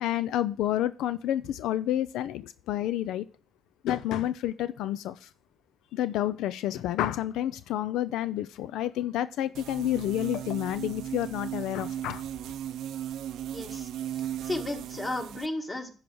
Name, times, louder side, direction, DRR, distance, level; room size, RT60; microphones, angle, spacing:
voice 1, 0.0-3.3 3.8-5.3 5.9-12.2, left 12 dB, 90° left, 0.4 m, -29 dB
sound 1, 9.5-15.5, right 11 dB, 80° right, 0.5 m, -36 dB
voice 2, 13.5-16.0, left 2 dB, 20° left, 1.9 m, -35 dB
10.5 x 4.8 x 6.2 m
cardioid pair, 90°, 0 cm